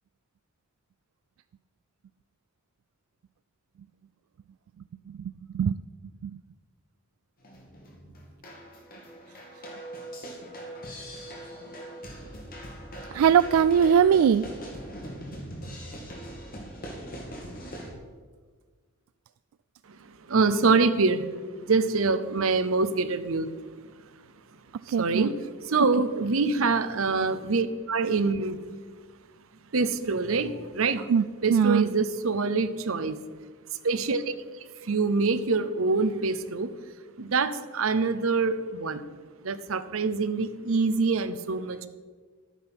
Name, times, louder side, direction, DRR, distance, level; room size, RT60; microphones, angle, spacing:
voice 1, 5.1-5.8 6.2-6.3 13.1-14.5 24.9-25.3 25.8-25.9 31.1-31.9, right 7 dB, 85° right, 14 dB, 0.3 m, -21 dB
sound 1, 7.4-17.9, right 1 dB, 45° left, 2.4 m, -41 dB
voice 2, 20.3-21.2 21.7-23.5 25.0-25.3 25.7-28.6 29.7-31.0 31.4-33.2 33.8-34.3 34.9-36.7 37.2-39.0 39.4-41.9, right 4 dB, 70° right, 12 dB, 0.7 m, -25 dB
12.0 x 9.2 x 6.0 m, 1.5 s
head